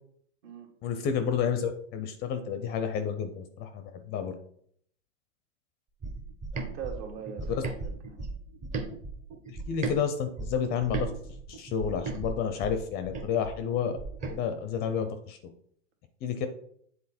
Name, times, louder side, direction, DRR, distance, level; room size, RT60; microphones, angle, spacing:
voice 1, 0.8-4.3 7.4-7.6 9.5-11.1 11.5-14.0 14.3-15.4 16.2-16.5, left 7 dB, 25° left, 8 dB, 0.5 m, -30 dB
sound 1, 6.0-10.0 10.4-14.4, right 3 dB, 20° right, 0.8 m, -36 dB
voice 2, 6.5-8.2, right 7 dB, 55° right, 3 dB, 1.7 m, -42 dB
7.8 x 3.8 x 4.2 m, 0.65 s
hypercardioid pair, 135°, 37 cm